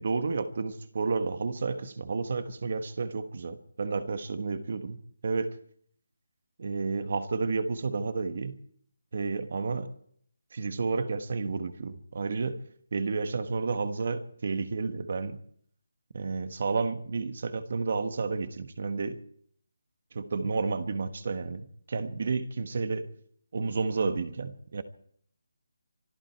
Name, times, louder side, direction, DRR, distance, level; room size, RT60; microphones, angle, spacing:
voice 1, 0.0-5.5 6.6-8.6 9.1-9.9 10.5-12.6 12.9-15.4 16.1-19.2 20.1-23.1 23.5-24.8, right 4 dB, 40° right, 1.3 m, -31 dB
25.0 x 12.5 x 4.6 m
hypercardioid pair, 180°, 0 cm